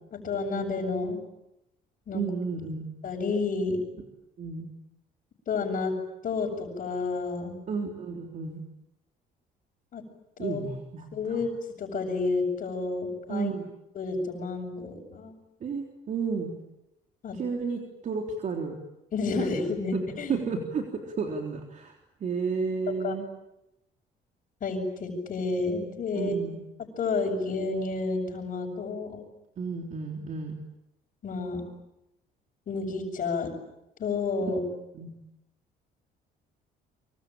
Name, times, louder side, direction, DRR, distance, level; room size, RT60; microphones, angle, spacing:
voice 1, 0.1-1.2 2.1-2.2 3.0-3.8 5.5-5.9 6.2-7.6 9.9-10.0 10.4-10.6 11.1-11.5 11.8-13.5 13.9-15.4 17.2-17.4 19.1-20.4 22.9-23.1 24.6-26.3 27.0-29.3 31.2-31.7 32.7-33.5 34.0-34.6, left 4 dB, 50° left, -5 dB, 6.6 m, -30 dB
voice 2, 2.1-2.8 4.4-4.7 7.7-8.6 10.4-11.4 13.3-13.7 15.6-16.5 17.4-18.7 19.4-19.5 19.9-20.0 20.3-23.3 26.1-26.6 29.6-30.5 34.9-35.1, right 5 dB, 45° right, 2 dB, 3.6 m, -32 dB
25.5 x 25.0 x 8.8 m, 0.89 s
cardioid pair, 110°, 17 cm